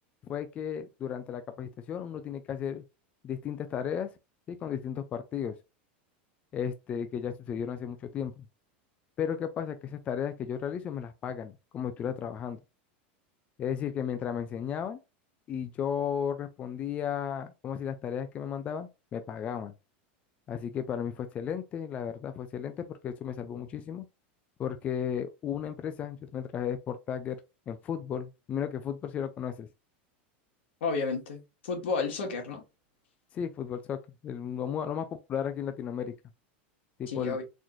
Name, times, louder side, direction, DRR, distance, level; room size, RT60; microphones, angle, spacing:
voice 1, 0.3-2.8 3.2-4.1 4.5-5.6 6.5-8.4 9.2-12.6 13.6-15.0 15.5-19.7 20.5-24.1 24.6-27.4 27.7-29.7 33.3-36.1 37.0-37.4, left 8 dB, 20° left, 0.4 m, -34 dB
voice 2, 30.8-32.6 37.1-37.4, left 4 dB, 85° left, 1.8 m, -31 dB
4.1 x 3.1 x 2.5 m
supercardioid pair, 160°, 6 cm